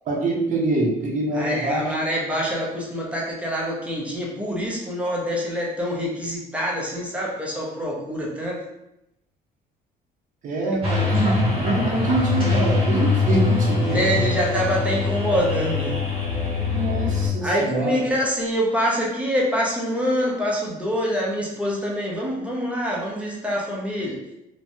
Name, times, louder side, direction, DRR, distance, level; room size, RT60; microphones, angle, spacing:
voice 1, 0.1-1.9 10.4-14.3 16.6-18.0, right 2 dB, 50° right, -1 dB, 0.7 m, -25 dB
voice 2, 1.3-8.6 13.9-15.9 17.4-24.2, equal, 5° right, -4 dB, 0.7 m, -25 dB
sound 1, 10.8-17.3, left 3 dB, 30° right, 1.3 m, -23 dB
3.1 x 2.2 x 2.6 m, 0.86 s
cardioid pair, 110°, 17 cm